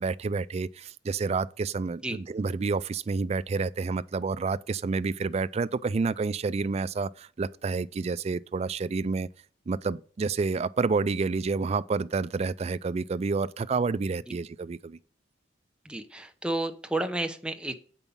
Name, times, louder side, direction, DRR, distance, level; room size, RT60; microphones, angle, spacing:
voice 1, 0.0-9.3 9.7-15.0, right 4 dB, 35° right, 0.3 m, -29 dB
voice 2, 15.8-17.8, right 1 dB, 5° right, 0.7 m, -31 dB
8.2 x 5.4 x 7.0 m
head